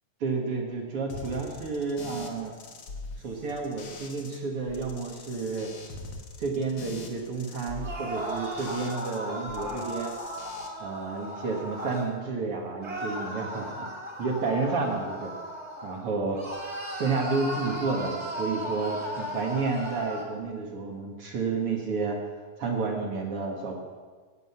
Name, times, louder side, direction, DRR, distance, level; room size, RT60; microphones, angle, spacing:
voice 1, 0.2-2.5 3.2-5.8 6.4-10.1 10.8-13.9 14.2-15.3 15.8-16.4 16.9-22.2 22.6-23.7, right 4 dB, 55° right, 1 dB, 1.7 m, -30 dB
sound 1, 1.1-4.4 4.7-9.2 9.5-10.7, left 3 dB, 85° left, 1.0 m, -43 dB
sound 2, 7.7-12.1 12.8-16.0 16.3-20.3, equal, 25° right, 1.8 m, -36 dB
18.0 x 7.9 x 5.6 m, 1.5 s
omnidirectional pair, 4.3 m